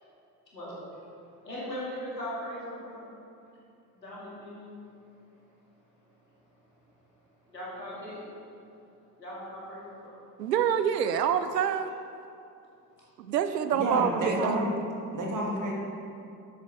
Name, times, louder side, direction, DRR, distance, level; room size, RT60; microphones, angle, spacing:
voice 1, 1.4-3.1 3.9-4.7 7.5-8.2 9.2-10.2, equal, 90° left, -7 dB, 2.4 m, -39 dB
voice 2, 10.4-11.9 13.2-14.7, right 8 dB, 80° right, 10 dB, 0.6 m, -27 dB
voice 3, 13.7-14.7 15.1-15.7, right 1 dB, 40° right, -2 dB, 2.5 m, -29 dB
11.5 x 8.4 x 3.6 m, 2.7 s
figure-of-eight pair, 60°, 49 cm